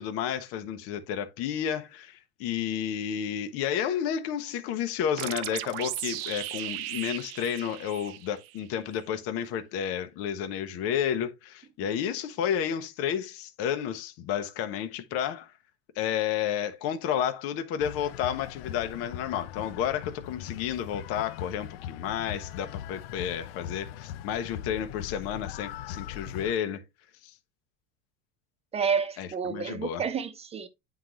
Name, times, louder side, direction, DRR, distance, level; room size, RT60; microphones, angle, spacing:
voice 1, 0.0-15.5 16.0-26.8 27.2-27.3 29.2-30.0, left 9 dB, 55° left, 0.9 m, -31 dB
sound 1, 5.2-8.7, right 14 dB, 80° right, 0.7 m, -36 dB
sound 2, 17.8-26.5, left 11 dB, 85° left, 0.5 m, -40 dB
voice 2, 28.7-30.7, right 6 dB, 20° right, 0.9 m, -30 dB
9.2 x 3.9 x 3.0 m
supercardioid pair, 120°, 29 cm